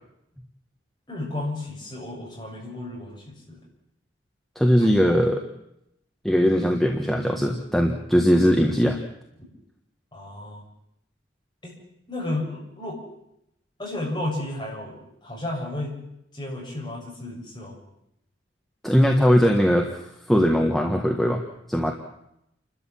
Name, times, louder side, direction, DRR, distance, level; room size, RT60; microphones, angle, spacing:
voice 1, 1.1-3.6 4.8-4.9 10.1-10.6 11.6-11.7 12.1-13.0 13.8-16.0 16.3-17.8, left 1 dB, 25° left, -3 dB, 7.5 m, -33 dB
voice 2, 4.5-5.4 6.2-9.0 18.8-20.0 20.3-21.4 21.7-21.9, equal, ahead, 1 dB, 1.5 m, -20 dB
29.5 x 13.0 x 7.6 m, 0.80 s
head